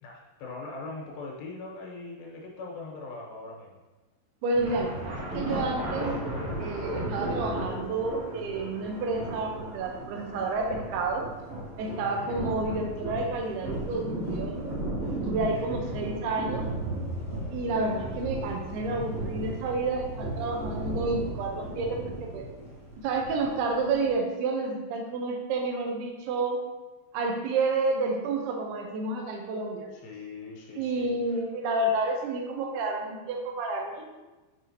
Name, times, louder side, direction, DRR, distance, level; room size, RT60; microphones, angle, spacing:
voice 1, 0.0-3.7 12.0-12.5 15.5-16.0 29.9-31.2, left 3 dB, 90° left, -2 dB, 3.4 m, -41 dB
voice 2, 4.4-6.2 6.6-11.3 11.8-14.7 15.2-16.7 17.5-22.5 23.0-26.6 27.1-29.9 30.8-34.1, right 3 dB, 80° right, 2 dB, 2.7 m, -30 dB
sound 1, 4.5-24.1, right 1 dB, 45° right, 1.3 m, -35 dB
6.7 x 6.1 x 2.7 m, 1.2 s
omnidirectional pair, 4.7 m